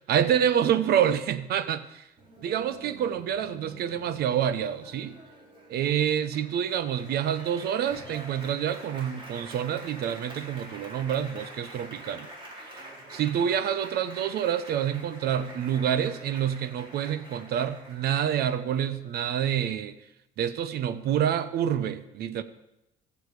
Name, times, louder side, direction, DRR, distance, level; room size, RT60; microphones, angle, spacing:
voice 1, 0.1-2.0 2.4-5.2 5.7-12.3 13.1-19.9 20.4-22.4, right 9 dB, 70° right, 13 dB, 0.9 m, -27 dB
Applause, 2.2-19.1, right 1 dB, 30° right, 4.0 m, -47 dB
21.5 x 7.4 x 4.9 m, 0.88 s
cardioid pair, 110°, 17 cm